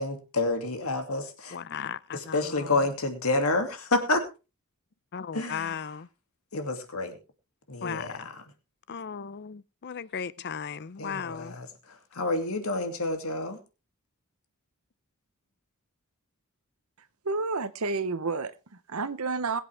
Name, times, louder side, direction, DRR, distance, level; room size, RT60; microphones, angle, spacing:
voice 1, 0.0-1.6 2.1-4.3 5.3-5.9 6.5-7.2 7.7-8.4 11.0-13.6, left 2 dB, 75° left, 2.6 m, -29 dB
voice 2, 1.5-2.7 5.1-6.1 7.8-8.1 8.9-11.5, left 7 dB, 50° left, 0.5 m, -36 dB
voice 3, 17.0-19.6, right 4 dB, 80° right, 0.9 m, -31 dB
21.5 x 8.3 x 3.5 m
head